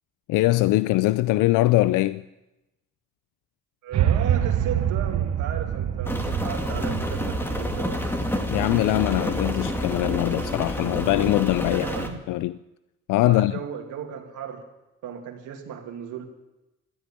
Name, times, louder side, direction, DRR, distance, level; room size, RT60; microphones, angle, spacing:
voice 1, 0.3-2.2 8.5-11.9 12.3-12.6 13.1-13.5, left 17 dB, 90° left, 0.5 m, -22 dB
voice 2, 3.8-8.2 11.7-12.2 13.3-14.6 15.0-16.3, right 8 dB, 85° right, 2.5 m, -35 dB
sound 1, 3.9-10.1, right 10 dB, 65° right, 1.1 m, -27 dB
Rain, 6.0-12.1, left 1 dB, 5° left, 2.4 m, -28 dB
13.5 x 12.5 x 8.6 m
cardioid pair, 90°, 30 cm